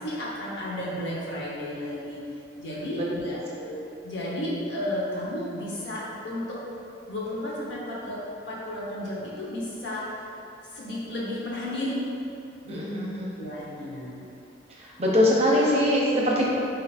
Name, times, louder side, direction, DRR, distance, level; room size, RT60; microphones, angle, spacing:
voice 1, 0.0-2.3 2.6-3.4 4.0-6.7 7.1-10.3 10.7-12.0 12.6-12.9 13.4-14.2, left 1 dB, 85° left, -5 dB, 1.0 m, -33 dB
voice 2, 12.7-13.3 14.7-16.4, left 1 dB, 35° right, -4 dB, 0.7 m, -23 dB
4.1 x 2.8 x 4.2 m, 2.7 s
head